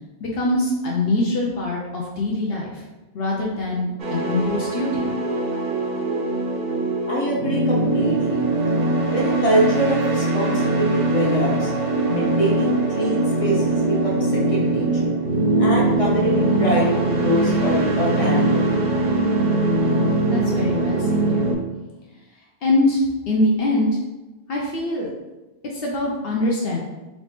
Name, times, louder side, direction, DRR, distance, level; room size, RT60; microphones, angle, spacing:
voice 1, 0.2-2.8 3.1-5.1 20.3-21.5 22.6-23.9 24.5-25.1 25.7-26.8, left 2 dB, 65° left, -3 dB, 0.7 m, -23 dB
sound 1, 4.0-21.5, right 2 dB, 50° right, 0.6 m, -21 dB
voice 2, 7.1-8.5 9.1-11.7 12.0-15.2 15.6-18.8, equal, 35° left, -4 dB, 0.8 m, -24 dB
3.1 x 2.6 x 3.3 m, 1.1 s
omnidirectional pair, 1.2 m